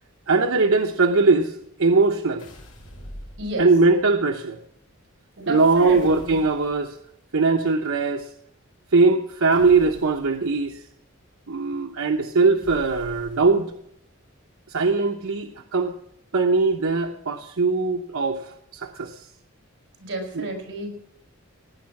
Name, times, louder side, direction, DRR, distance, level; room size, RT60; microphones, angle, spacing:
voice 1, 0.3-2.5 3.6-4.6 5.5-7.0 7.3-8.3 8.9-10.8 11.5-13.7 14.7-15.9 16.3-19.2 20.4-20.5, right 3 dB, 85° right, 4 dB, 0.9 m, -20 dB
sound 1, 2.4-4.0 5.4-7.0 9.5-10.4 12.6-13.7, equal, 75° left, 5.5 m, -44 dB
voice 2, 3.4-3.7 5.4-6.4 20.0-20.9, right 2 dB, 60° right, 2 dB, 5.9 m, -31 dB
18.5 x 9.6 x 6.0 m, 0.73 s
head